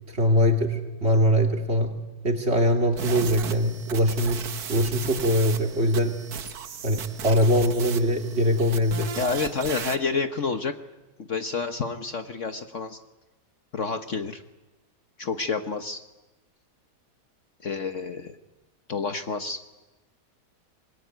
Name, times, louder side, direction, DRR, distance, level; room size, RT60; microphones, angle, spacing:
voice 1, 0.1-1.9 2.2-4.4 4.7-6.2 6.8-9.1, equal, 35° right, 3 dB, 3.0 m, -22 dB
sound 1, 2.9-10.0, right 7 dB, 65° right, 1.6 m, -36 dB
voice 2, 9.2-10.7 11.2-13.0 13.7-14.4 15.2-16.0 17.6-18.4 18.9-19.6, left 4 dB, 50° left, 7 dB, 1.3 m, -29 dB
26.0 x 21.5 x 9.3 m, 1.1 s
omnidirectional pair, 1.8 m